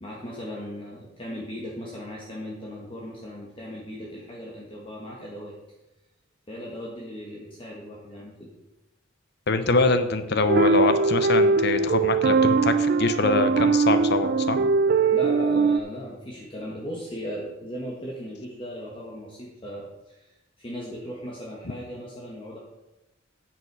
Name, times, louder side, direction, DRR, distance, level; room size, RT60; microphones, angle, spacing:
voice 1, 0.0-5.5 6.5-8.5 15.1-22.6, equal, 25° left, -3 dB, 1.4 m, -37 dB
voice 2, 9.5-14.7, left 3 dB, 55° left, 10 dB, 0.8 m, -24 dB
sound 1, 10.5-15.8, right 4 dB, 50° right, 0.4 m, -21 dB
9.7 x 7.6 x 4.8 m, 0.98 s
head